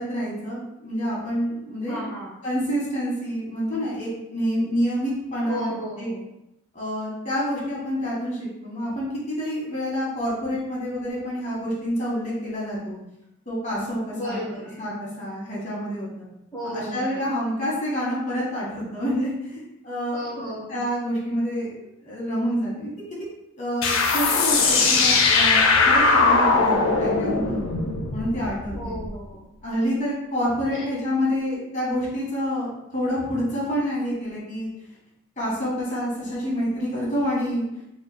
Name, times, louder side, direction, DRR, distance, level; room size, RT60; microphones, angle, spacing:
voice 1, 0.0-2.0 2.4-6.1 6.7-13.0 13.4-14.4 14.8-16.2 16.7-22.9 23.6-27.6 28.1-29.0 29.6-34.7 35.4-37.6, equal, 35° left, -5 dB, 1.3 m, -28 dB
voice 2, 1.9-2.4 5.5-6.2 14.1-14.8 16.5-17.2 20.1-20.9 28.7-29.5 30.7-30.8, equal, 15° left, -10 dB, 0.9 m, -34 dB
sound 1, 23.8-29.1, left 4 dB, 75° left, 0.6 m, -20 dB
5.0 x 3.1 x 2.2 m, 0.87 s
head